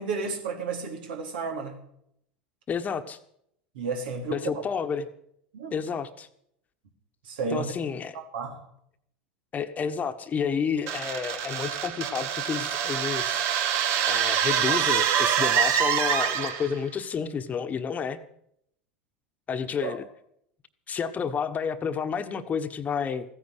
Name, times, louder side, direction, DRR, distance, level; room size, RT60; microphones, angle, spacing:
voice 1, 0.0-1.8 3.7-4.6 5.5-5.8 7.2-7.7 8.1-8.6 19.8-20.0, right 4 dB, 80° right, 4 dB, 3.2 m, -32 dB
voice 2, 2.7-3.2 4.3-5.1 5.7-6.3 7.5-8.2 9.5-13.7 14.1-18.2 19.5-20.0 20.9-23.2, left 6 dB, 30° left, 10 dB, 1.2 m, -30 dB
sound 1, 10.9-16.8, right 9 dB, 55° right, 1.6 m, -25 dB
15.0 x 9.8 x 8.1 m, 0.72 s
hypercardioid pair, 95°, 5 cm